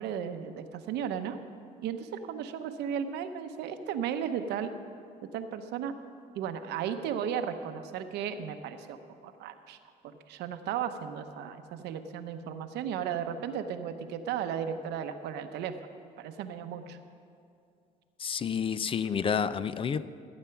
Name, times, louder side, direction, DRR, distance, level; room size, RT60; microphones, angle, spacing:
voice 1, 0.0-1.4 1.8-4.7 5.3-5.9 6.3-9.0 9.2-9.8 10.0-15.8 16.2-17.0, right 8 dB, 85° right, 8 dB, 0.9 m, -35 dB
voice 2, 18.2-20.1, left 7 dB, 30° left, 15 dB, 0.4 m, -29 dB
15.5 x 8.9 x 5.8 m, 2.4 s
cardioid pair, 110°, 17 cm